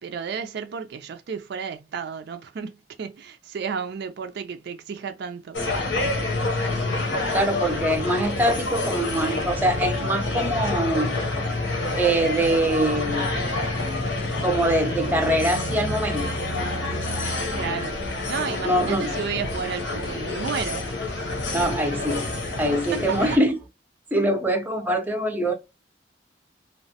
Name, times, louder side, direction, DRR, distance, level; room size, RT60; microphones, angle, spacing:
voice 1, 0.0-5.6 17.5-21.0 22.9-23.2, right 6 dB, 65° right, 0.4 m, -32 dB
sound 1, 5.5-23.4, left 2 dB, 70° left, 0.8 m, -27 dB
voice 2, 7.3-11.2 12.0-13.3 14.4-16.4 18.6-19.1 21.5-22.3 22.6-23.6 24.1-25.5, right 1 dB, 10° right, 0.5 m, -23 dB
2.9 x 2.1 x 2.7 m
head